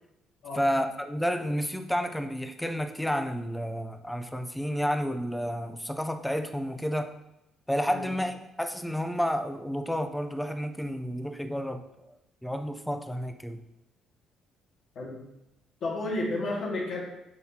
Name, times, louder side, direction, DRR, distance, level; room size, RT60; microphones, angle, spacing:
voice 1, 0.5-7.1 7.7-11.8 12.4-13.6, equal, 5° left, 7 dB, 0.5 m, -30 dB
voice 2, 15.8-17.0, left 2 dB, 55° left, -4 dB, 2.0 m, -31 dB
10.5 x 4.1 x 2.9 m, 0.87 s
cardioid pair, 135°, 0 cm